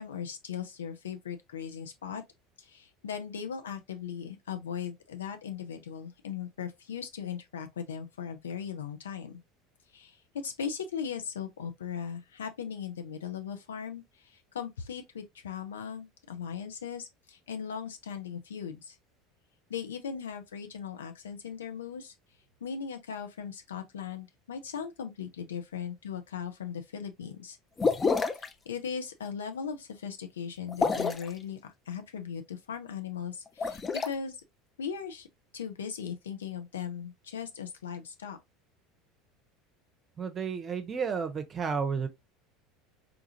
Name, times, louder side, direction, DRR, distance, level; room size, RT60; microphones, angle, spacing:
voice 1, 0.0-2.2 2.6-9.4 9.9-10.2 10.4-19.0 19.7-22.1 22.6-27.6 28.4-31.6 31.9-34.4 34.8-35.3 35.5-38.4, left 7 dB, 75° left, 0.6 m, -38 dB
sound 1, 27.8-28.5 30.7-31.3 33.5-34.1, left 4 dB, 25° left, 0.4 m, -27 dB
voice 2, 40.2-42.1, right 6 dB, 30° right, 0.7 m, -32 dB
3.8 x 2.4 x 2.7 m
figure-of-eight pair, 70°, 0 cm